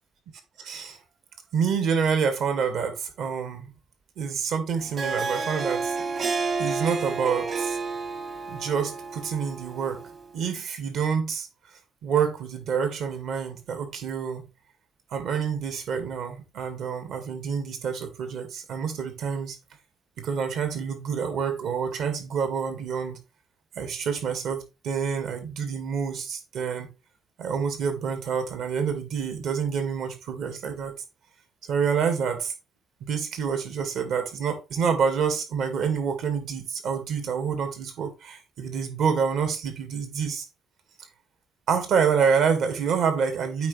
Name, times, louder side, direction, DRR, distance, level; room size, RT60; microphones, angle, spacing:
voice 1, 0.6-1.0 1.5-3.7 4.2-6.0 6.6-7.8 8.5-10.0 10.3-11.5 12.0-14.5 15.1-19.6 20.2-23.2 23.8-26.9 27.4-30.9 31.7-32.5 33.0-40.4 41.7-43.7, right 6 dB, 65° right, 2.0 m, -27 dB
Harp, 4.8-10.2, right 4 dB, 35° right, 1.2 m, -30 dB
8.4 x 4.9 x 3.3 m
cardioid pair, 160°, 0 cm